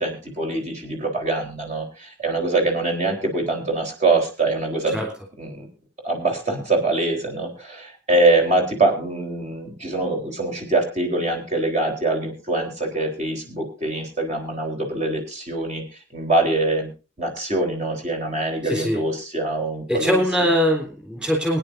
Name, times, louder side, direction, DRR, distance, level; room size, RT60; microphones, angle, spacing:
voice 1, 0.0-5.0 5.4-5.7 6.0-15.8 16.1-16.9 17.2-20.2, right 2 dB, 40° right, 3 dB, 3.9 m, -23 dB
voice 2, 18.6-19.0 19.9-21.6, equal, 5° right, 1 dB, 3.7 m, -22 dB
23.5 x 10.0 x 2.7 m, 0.31 s
head